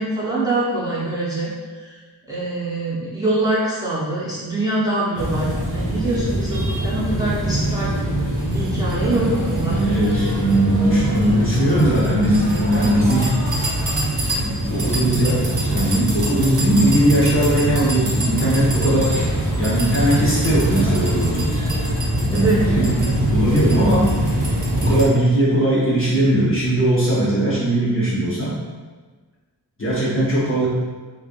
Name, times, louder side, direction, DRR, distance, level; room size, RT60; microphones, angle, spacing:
voice 1, 0.0-1.5 1.8-1.9 2.3-7.9 8.5-9.8 22.3-22.6, right 2 dB, 10° right, -9 dB, 0.8 m, -24 dB
sound 1, 5.2-25.0, right 1 dB, 45° right, 0.9 m, -22 dB
voice 2, 9.0-13.4 14.4-19.2 19.6-21.5 22.2-24.1 24.8-28.5 29.8-30.7, right 1 dB, 30° left, -8 dB, 0.7 m, -19 dB
3.2 x 2.4 x 2.4 m, 1.4 s
wide cardioid pair, 95°, 43 cm